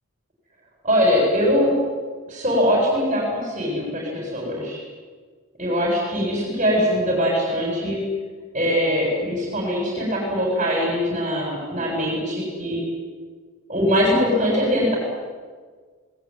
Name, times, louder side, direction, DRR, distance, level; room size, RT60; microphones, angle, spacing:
voice 1, 0.8-1.7 2.3-4.8 5.6-8.0 8.5-12.8 13.7-15.0, equal, 30° right, -2 dB, 7.8 m, -22 dB
27.5 x 19.5 x 9.8 m, 1.5 s
head